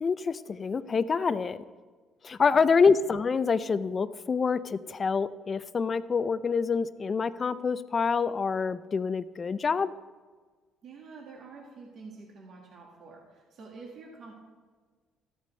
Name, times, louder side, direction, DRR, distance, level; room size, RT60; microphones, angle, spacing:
voice 1, 0.0-1.6 2.2-9.9, left 5 dB, 35° left, 14 dB, 0.5 m, -26 dB
voice 2, 2.5-2.9 10.8-14.3, right 4 dB, 60° right, -1 dB, 1.9 m, -48 dB
13.0 x 8.2 x 3.3 m, 1.5 s
cardioid pair, 90°, 0 cm